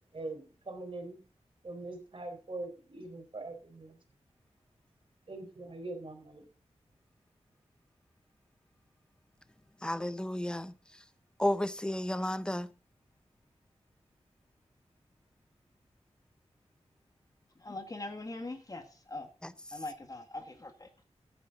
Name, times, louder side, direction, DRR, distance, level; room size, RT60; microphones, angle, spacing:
voice 1, 0.1-1.2 1.6-4.0 5.3-6.5, right 2 dB, 50° right, 4.2 m, -42 dB
voice 2, 9.8-11.0 11.4-12.7 19.4-19.8, left 1 dB, 5° left, 0.6 m, -33 dB
voice 3, 17.6-18.8 19.1-19.3 19.7-21.0, left 2 dB, 30° left, 1.7 m, -41 dB
14.5 x 9.6 x 3.8 m
wide cardioid pair, 105°, 11 cm